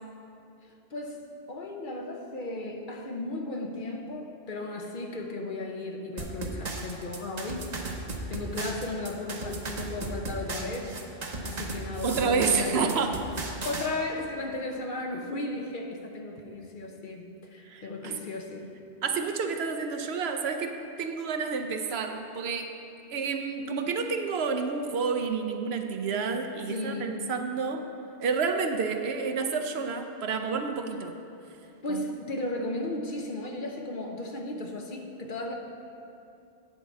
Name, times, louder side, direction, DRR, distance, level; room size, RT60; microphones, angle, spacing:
voice 1, 0.9-7.7 8.3-11.0 11.4-13.2 13.6-18.8 26.7-27.3 31.8-35.5, left 2 dB, 50° left, 2 dB, 0.8 m, -35 dB
sound 1, 6.2-13.9, right 2 dB, 40° right, 0.8 m, -36 dB
voice 2, 12.0-13.2 17.7-18.2 19.0-22.7 23.1-27.9 28.2-31.2 31.9-32.0, right 5 dB, 70° right, 6 dB, 0.8 m, -29 dB
9.3 x 4.5 x 7.2 m, 2.7 s
omnidirectional pair, 1.2 m